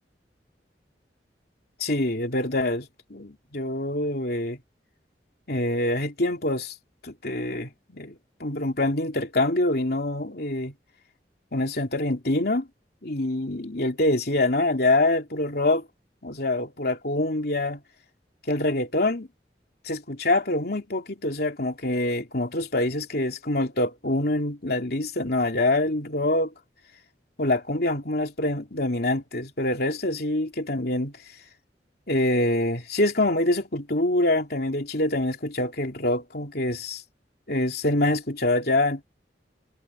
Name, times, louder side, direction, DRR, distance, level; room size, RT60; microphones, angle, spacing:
voice 1, 1.8-4.6 5.5-6.7 7.0-10.7 11.5-12.7 13.0-15.8 16.2-17.8 18.5-19.3 19.8-26.5 27.4-31.2 32.1-37.0 37.5-39.0, left 2 dB, 60° left, 3.1 m, -25 dB
head